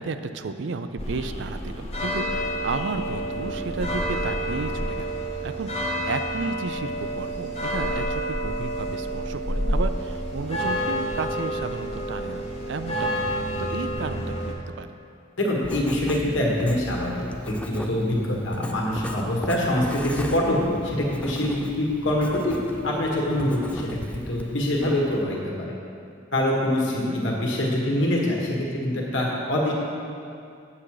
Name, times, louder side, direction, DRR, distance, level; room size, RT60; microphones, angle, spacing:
voice 1, 0.0-5.1 5.4-14.9 27.0-27.2, right 4 dB, 65° right, 10 dB, 0.4 m, -33 dB
sound 1, 1.0-14.5, equal, 30° left, 0.9 m, -29 dB
voice 2, 15.4-22.6 22.8-25.7 26.3-29.7, left 1 dB, 70° left, -2 dB, 1.7 m, -25 dB
Writing, 15.6-25.2, left 1 dB, 5° left, 0.3 m, -37 dB
8.3 x 7.4 x 4.9 m, 2.5 s
head